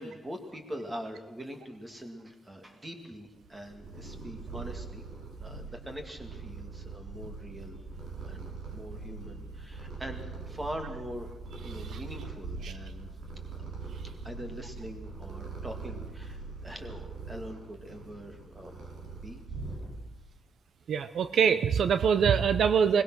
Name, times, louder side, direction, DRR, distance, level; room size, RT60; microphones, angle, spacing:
voice 1, 0.0-5.0 5.4-7.8 8.2-13.1 13.6-13.8 14.2-18.8 19.2-19.4, equal, 15° right, 5 dB, 2.3 m, -43 dB
Purr, 3.4-20.3, right 4 dB, 85° right, 5.8 m, -42 dB
voice 2, 20.9-23.0, right 7 dB, 70° right, 12 dB, 0.7 m, -24 dB
21.5 x 19.5 x 6.3 m, 0.99 s
wide cardioid pair, 175°, 0 cm